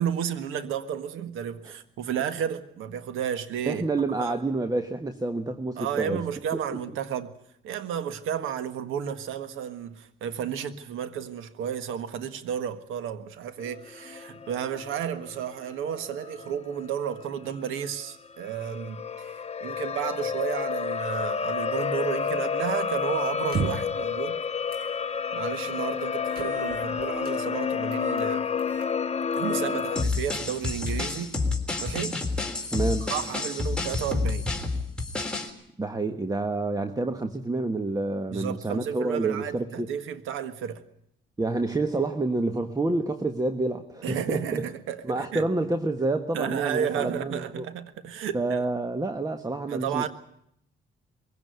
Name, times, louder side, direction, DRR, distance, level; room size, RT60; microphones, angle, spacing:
voice 1, 0.0-3.8 4.2-4.4 5.8-7.3 7.6-24.4 25.3-28.5 29.3-31.4 31.8-32.2 33.0-34.5 38.3-40.8 44.0-45.4 46.3-48.6 49.7-50.1, right 8 dB, 90° right, 1.6 m, -32 dB
voice 2, 3.6-6.2 32.7-33.1 35.8-39.9 41.4-44.6 45.0-47.7 48.3-50.1, right 2 dB, 20° right, 1.4 m, -28 dB
sound 1, 13.6-30.0, left 6 dB, 30° left, 0.9 m, -30 dB
sound 2, 23.4-24.0 24.7-24.9 25.3-25.4 26.3-27.4 27.9-28.3 28.6-28.9 29.3-29.7 30.0-30.1 30.6-31.3, right 4 dB, 50° right, 6.0 m, -35 dB
sound 3, 30.0-35.5, left 3 dB, 5° left, 3.6 m, -29 dB
22.0 x 17.0 x 9.4 m
cardioid pair, 90°, 20 cm